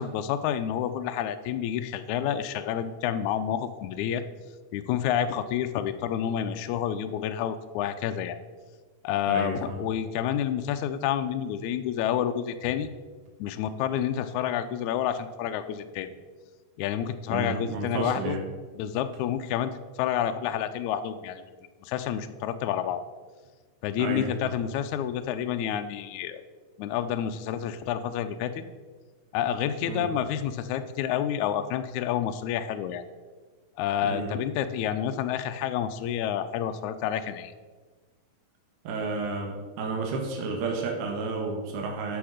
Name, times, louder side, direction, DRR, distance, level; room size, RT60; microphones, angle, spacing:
voice 1, 0.0-4.2 4.7-8.4 9.0-12.9 13.4-16.1 16.8-18.4 18.8-19.7 20.0-21.4 21.8-23.0 23.8-26.4 26.8-28.5 29.3-33.0 33.8-37.5, left 9 dB, 80° left, 8 dB, 1.7 m, -29 dB
voice 2, 9.3-9.8 17.3-18.4 24.0-24.5 29.9-30.1 34.0-34.4 38.8-42.2, right 3 dB, 70° right, 1 dB, 2.7 m, -31 dB
12.0 x 6.3 x 5.0 m, 1.4 s
omnidirectional pair, 3.9 m